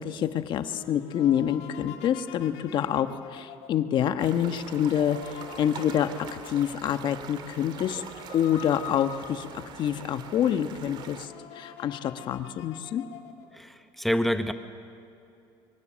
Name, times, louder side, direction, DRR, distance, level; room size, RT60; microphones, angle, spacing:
voice 1, 0.0-6.1 6.5-8.0 8.3-13.0, left 9 dB, 50° left, 9 dB, 1.2 m, -27 dB
sound 1, 0.7-10.0 10.5-10.6 10.8-13.6, left 11 dB, 75° left, 2.1 m, -46 dB
sound 2, 4.2-11.3, right 7 dB, 50° right, 1.8 m, -44 dB
voice 2, 13.5-14.5, equal, ahead, 8 dB, 0.9 m, -27 dB
25.5 x 24.0 x 7.5 m, 2.7 s
cardioid pair, 135°, 10 cm